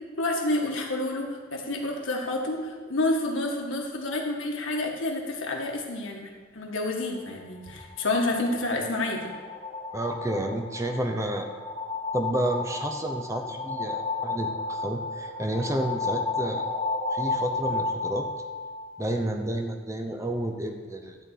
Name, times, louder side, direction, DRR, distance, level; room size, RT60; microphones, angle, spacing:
voice 1, 0.2-9.2, left 2 dB, 90° left, 0 dB, 1.8 m, -29 dB
sound 1, 7.7-19.3, left 3 dB, 35° left, 1.3 m, -33 dB
voice 2, 9.9-11.5 12.1-16.6 17.1-18.3 19.0-21.2, right 1 dB, 15° right, 4 dB, 0.7 m, -30 dB
12.5 x 4.2 x 8.3 m, 1.5 s
head